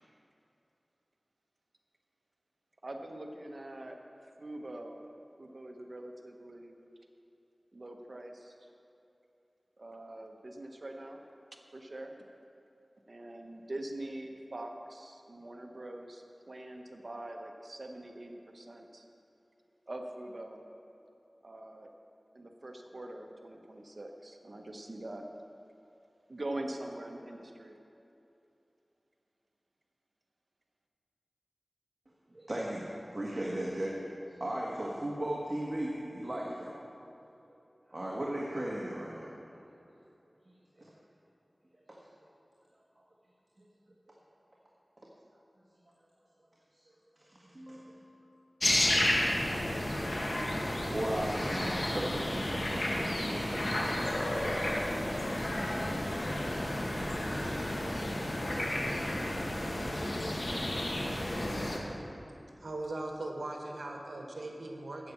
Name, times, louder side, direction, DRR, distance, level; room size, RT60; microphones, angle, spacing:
voice 1, 2.8-4.0 4.2-5.0 5.4-6.7 7.7-8.5 9.8-11.2 11.7-12.1 13.1-19.0 19.9-20.6 21.4-21.9 22.3-25.2 26.3-27.8, right 1 dB, 55° right, 3 dB, 1.0 m, -43 dB
voice 2, 32.3-34.0 34.4-36.7 37.9-39.3 40.8-40.9 41.9-42.0 44.1-44.2 45.0-45.1 46.7-46.8 47.2-48.2 50.6-54.5, right 1 dB, 40° right, -4 dB, 1.5 m, -37 dB
sound 1, 48.6-61.8, left 1 dB, 55° left, 1.5 m, -32 dB
voice 3, 62.6-65.1, right 2 dB, 85° right, 2 dB, 1.3 m, -39 dB
9.2 x 8.4 x 7.2 m, 2.9 s
wide cardioid pair, 55°, 0 cm